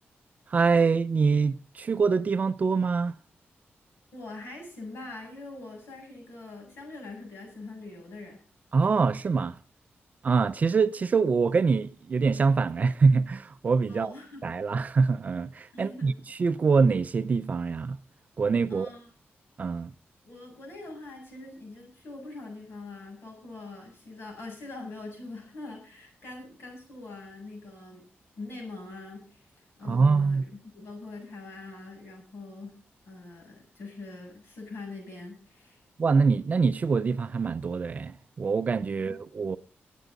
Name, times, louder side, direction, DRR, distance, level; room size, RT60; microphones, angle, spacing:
voice 1, 0.5-3.1 8.7-9.6 10.2-14.1 14.4-18.0 18.4-18.9 19.6-19.9 29.8-30.4 36.0-39.6, right 4 dB, 40° right, 0.5 m, -24 dB
voice 2, 4.1-8.4 13.9-14.5 15.7-16.2 18.7-19.1 20.3-28.0 28.4-32.8 33.0-35.8 39.0-39.2, left 2 dB, 65° left, 7.6 m, -43 dB
23.5 x 9.2 x 3.9 m
wide cardioid pair, 175°, 4 cm